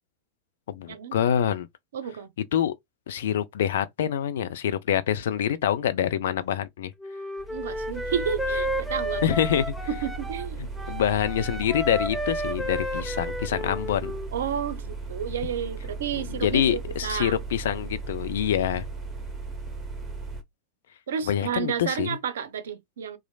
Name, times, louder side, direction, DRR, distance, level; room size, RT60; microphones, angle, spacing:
voice 1, 0.7-1.7 2.5-2.7 3.1-6.9 9.2-9.6 10.9-14.1 16.2-18.8 21.3-22.2, left 9 dB, 60° left, 0.4 m, -26 dB
voice 2, 1.9-2.3 7.5-9.2 9.9-10.6 14.3-17.4 21.1-23.2, right 8 dB, 65° right, 0.5 m, -31 dB
Wind instrument woodwind instrument, 7.0-10.5 10.8-14.3, equal, ahead, 0.5 m, -32 dB
sound 1, 7.4-20.4, right 3 dB, 20° right, 0.9 m, -36 dB
3.0 x 2.4 x 2.3 m
figure-of-eight pair, 90°, 0 cm